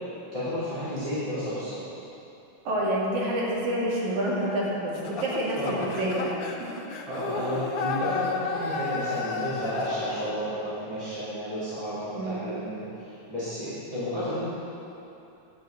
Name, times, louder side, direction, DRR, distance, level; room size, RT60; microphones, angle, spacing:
voice 1, 0.3-1.8 5.5-6.0 7.1-14.5, equal, 10° right, -14 dB, 3.1 m, -32 dB
voice 2, 2.7-6.3 12.1-12.4, right 1 dB, 65° right, -6 dB, 3.7 m, -28 dB
sound 1, 4.9-10.3, left 5 dB, 65° left, 1.4 m, -32 dB
12.0 x 7.0 x 7.8 m, 2.8 s
omnidirectional pair, 3.6 m